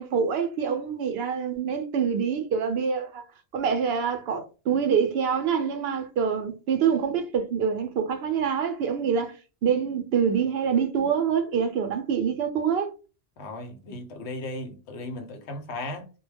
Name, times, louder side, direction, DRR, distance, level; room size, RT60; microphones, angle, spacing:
voice 1, 0.0-3.2 3.5-9.3 9.6-12.9, right 7 dB, 70° right, 0.8 m, -25 dB
voice 2, 13.4-16.1, left 2 dB, 80° left, 1.0 m, -36 dB
2.2 x 2.1 x 3.3 m
omnidirectional pair, 1.1 m